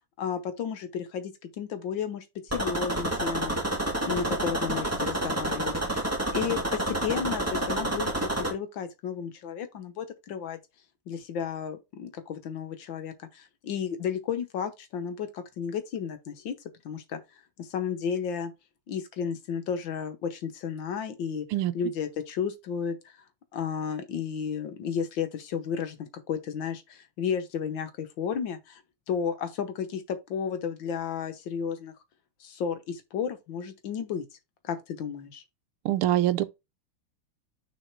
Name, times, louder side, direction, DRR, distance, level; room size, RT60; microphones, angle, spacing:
voice 1, 0.2-10.6 11.1-16.6 16.8-18.5 18.9-21.5 21.7-23.2 23.5-28.8 29.1-31.9 32.4-34.3 34.6-35.4, left 7 dB, 65° left, 1.5 m, -33 dB
sound 1, 2.5-8.5, right 1 dB, 10° right, 1.3 m, -29 dB
voice 2, 35.8-36.4, right 13 dB, 80° right, 1.5 m, -24 dB
6.3 x 3.8 x 4.5 m
omnidirectional pair, 2.4 m